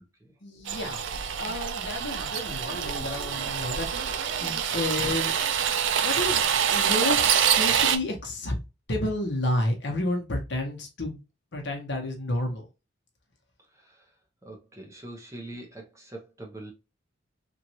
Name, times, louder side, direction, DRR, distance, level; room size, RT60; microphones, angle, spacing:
voice 1, 0.4-5.6 6.0-6.4 6.7-8.5 8.9-11.2 11.5-12.6, left 1 dB, 60° left, 0.9 m, -31 dB
sound 1, 0.7-8.0, right 8 dB, 65° right, 0.4 m, -26 dB
voice 2, 13.7-14.2 14.4-16.7, right 1 dB, 15° right, 0.8 m, -43 dB
3.0 x 2.5 x 2.8 m
head